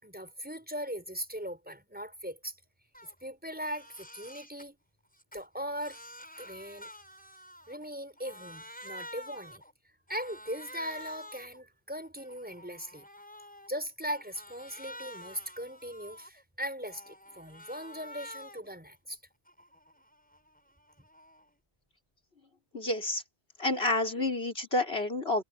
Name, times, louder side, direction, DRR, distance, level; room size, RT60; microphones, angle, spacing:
voice 1, 0.0-2.6 3.0-4.8 5.3-6.0 6.4-6.9 7.7-9.6 10.1-13.1 13.7-19.2, equal, 10° right, 5.6 m, -39 dB
Crying sobbing, 2.9-3.2 3.5-4.7 5.1-7.9 8.2-9.7 10.1-11.6 12.0-13.7 14.1-16.4 16.8-18.8 19.1-21.5, equal, 5° left, 7.0 m, -49 dB
voice 2, 22.7-23.2 23.6-25.4, left 2 dB, 65° left, 5.1 m, -29 dB
omnidirectional pair, 1.1 m